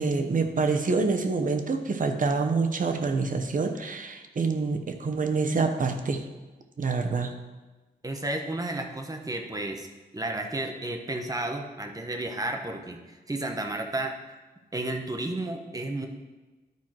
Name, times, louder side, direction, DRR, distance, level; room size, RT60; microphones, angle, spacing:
voice 1, 0.0-6.3 6.8-7.3, right 4 dB, 50° right, 5 dB, 0.9 m, -26 dB
voice 2, 8.0-9.9 10.1-14.1 14.7-16.1, right 2 dB, 20° right, 3 dB, 1.1 m, -32 dB
12.0 x 4.5 x 4.5 m, 1.2 s
wide cardioid pair, 95°, 17 cm